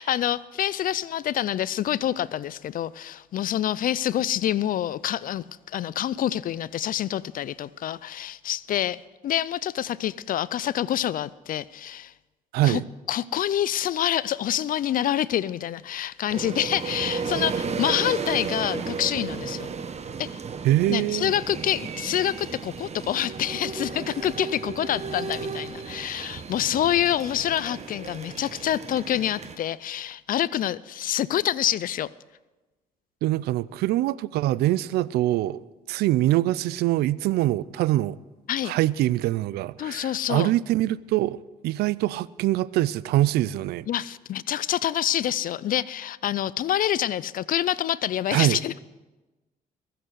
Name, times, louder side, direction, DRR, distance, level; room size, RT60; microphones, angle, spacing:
voice 1, 0.0-12.1 12.6-12.8 13.1-19.7 20.2-20.4 20.9-32.1 38.5-38.7 39.8-40.5 43.9-48.8, left 11 dB, 60° left, 0.5 m, -27 dB
voice 2, 12.5-12.8 20.6-21.3 33.2-35.6 35.9-38.2 38.6-41.4 41.6-43.9 48.3-48.6, right 15 dB, 80° right, 0.5 m, -24 dB
sound 1, 16.3-29.6, right 5 dB, 40° right, 1.2 m, -34 dB
22.0 x 7.9 x 6.4 m
supercardioid pair, 70°, 16 cm